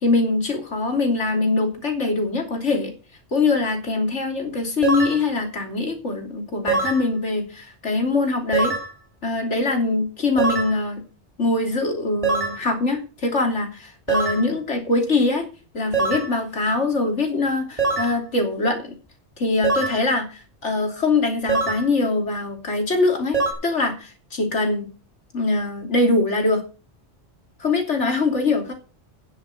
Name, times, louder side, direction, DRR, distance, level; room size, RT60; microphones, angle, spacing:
voice 1, 0.0-2.9 3.3-8.7 9.2-11.0 11.4-15.5 15.7-18.9 19.4-23.4 23.6-24.9 25.3-26.6 27.6-28.7, left 3 dB, 85° left, 4 dB, 3.3 m, -23 dB
sound 1, 4.8-5.2 6.7-7.1 8.5-8.9 10.4-10.8 12.2-12.6 14.1-14.5 15.9-16.3 17.8-18.2 19.6-20.0 21.5-21.9 23.3-23.5, right 3 dB, 30° right, 3.1 m, -23 dB
9.9 x 8.1 x 6.5 m, 0.34 s
omnidirectional pair, 1.2 m